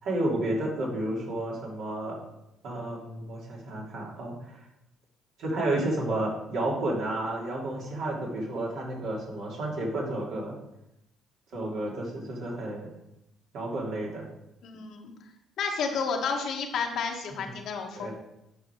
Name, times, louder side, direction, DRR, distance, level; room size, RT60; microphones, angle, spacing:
voice 1, 0.0-2.1 2.6-4.6 5.4-10.5 11.5-12.9 13.5-14.2 17.3-17.4 18.0-18.1, right 1 dB, 70° right, -4 dB, 3.0 m, -31 dB
voice 2, 14.6-15.1 15.6-18.1, left 5 dB, 70° left, 2 dB, 1.4 m, -31 dB
8.7 x 5.2 x 4.7 m, 0.87 s
supercardioid pair, 75°, 0 cm